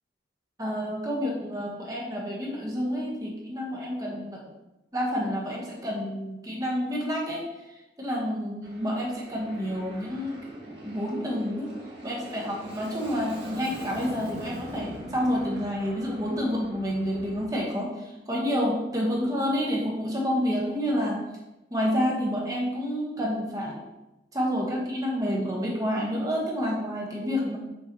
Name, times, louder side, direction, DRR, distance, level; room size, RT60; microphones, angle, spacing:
voice 1, 0.6-4.4 4.9-10.4 10.7-11.7 12.0-21.2 21.7-23.8 24.3-27.6, equal, 20° right, -3 dB, 1.4 m, -29 dB
Aircraft, 8.6-17.4, right 1 dB, 80° right, 1.8 m, -42 dB
6.7 x 6.4 x 3.1 m, 0.98 s
head